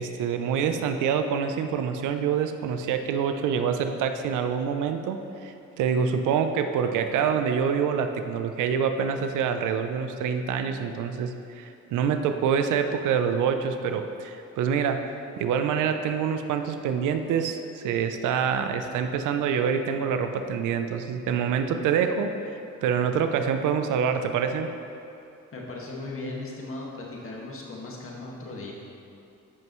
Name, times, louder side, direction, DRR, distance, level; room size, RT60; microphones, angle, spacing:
voice 1, 0.0-22.4 22.8-24.7, right 7 dB, 85° right, 7 dB, 0.6 m, -26 dB
voice 2, 25.5-28.7, left 2 dB, 45° left, -3 dB, 1.8 m, -37 dB
14.0 x 5.4 x 3.1 m, 2.7 s
cardioid pair, 90°, 30 cm